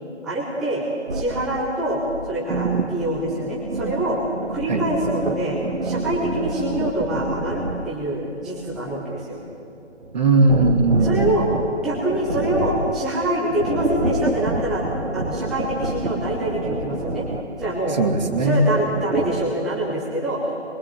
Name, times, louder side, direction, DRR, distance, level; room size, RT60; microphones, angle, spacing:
voice 1, 0.2-0.8 1.1-4.2 4.5-9.4 11.0-14.8 15.1-17.2 17.6-18.0 18.4-20.6, right 1 dB, ahead, -7 dB, 0.7 m, -25 dB
sound 1, 1.1-7.9 8.3-19.4, right 2 dB, 75° right, 2.0 m, -28 dB
voice 2, 10.1-11.5 17.9-18.6, right 3 dB, 40° right, 4 dB, 2.4 m, -19 dB
24.5 x 22.0 x 7.7 m, 2.4 s
figure-of-eight pair, 150°, 36 cm